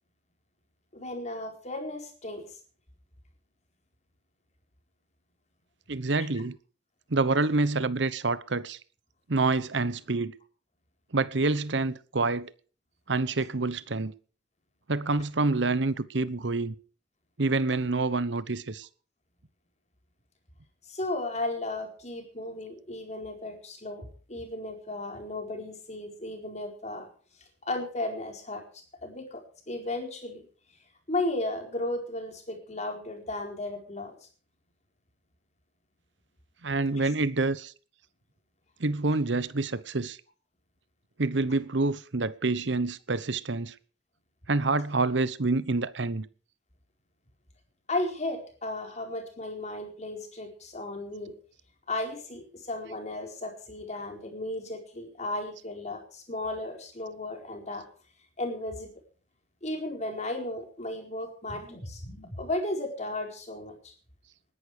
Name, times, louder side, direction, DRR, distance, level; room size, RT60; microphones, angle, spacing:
voice 1, 0.9-2.4 20.9-27.1 27.6-29.4 29.7-30.4 31.1-34.1 36.9-37.1 47.9-51.3 51.9-57.8 58.4-58.9 59.6-63.9, left 2 dB, 35° left, 4.6 m, -35 dB
voice 2, 5.9-6.5 7.1-8.8 9.3-10.3 11.1-12.5 13.1-14.1 14.9-16.7 17.4-18.9 36.6-37.7 38.8-40.2 41.2-43.7 44.5-46.3, right 3 dB, 65° right, 1.0 m, -27 dB
20.0 x 11.5 x 5.0 m
head